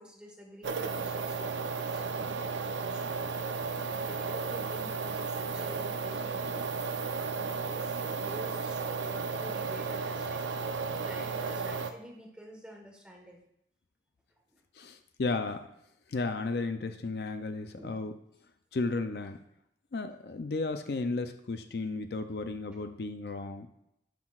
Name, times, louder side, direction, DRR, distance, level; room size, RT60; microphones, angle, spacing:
voice 1, 0.0-3.3 3.9-13.4 14.5-14.9 17.8-17.9, equal, 5° right, 0 dB, 1.3 m, -49 dB
sound 1, 0.6-11.9, right 4 dB, 85° right, 0.6 m, -34 dB
voice 2, 14.8-15.7 16.1-18.1 18.7-19.4 19.9-23.7, left 3 dB, 60° left, 8 dB, 0.5 m, -34 dB
11.5 x 5.9 x 2.4 m, 0.78 s
head